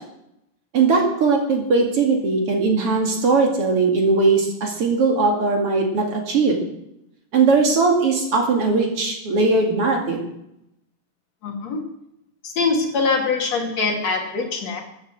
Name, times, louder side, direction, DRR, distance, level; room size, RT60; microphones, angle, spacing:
voice 1, 0.7-6.7 7.3-10.3, right 4 dB, 50° right, 2 dB, 3.1 m, -19 dB
voice 2, 11.4-11.8 12.4-14.8, left 4 dB, 65° left, 2 dB, 3.4 m, -23 dB
14.0 x 9.2 x 7.8 m, 0.80 s
omnidirectional pair, 3.4 m